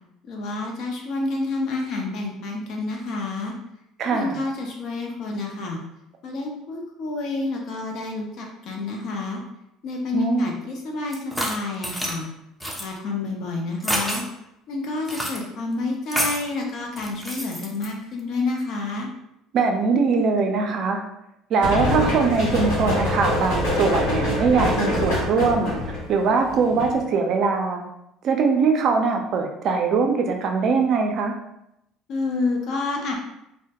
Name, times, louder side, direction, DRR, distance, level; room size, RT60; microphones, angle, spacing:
voice 1, 0.3-3.5 4.1-5.8 6.2-9.4 9.8-12.3 12.8-14.2 14.7-19.1 32.1-33.1, left 3 dB, 60° left, 1 dB, 0.6 m, -29 dB
voice 2, 4.0-4.4 10.1-10.5 19.5-21.0 21.5-25.7 26.1-27.8 28.2-31.3, right 4 dB, 55° right, 4 dB, 0.4 m, -21 dB
sound 1, 11.1-12.2 12.6-12.9 13.8-14.2 15.1-15.4 16.1-16.5 17.0-17.9, equal, ahead, 0.5 m, -27 dB
sound 2, 21.6-27.0, left 1 dB, 80° left, 1.0 m, -25 dB
2.1 x 2.1 x 2.8 m, 0.83 s
supercardioid pair, 95°, 0 cm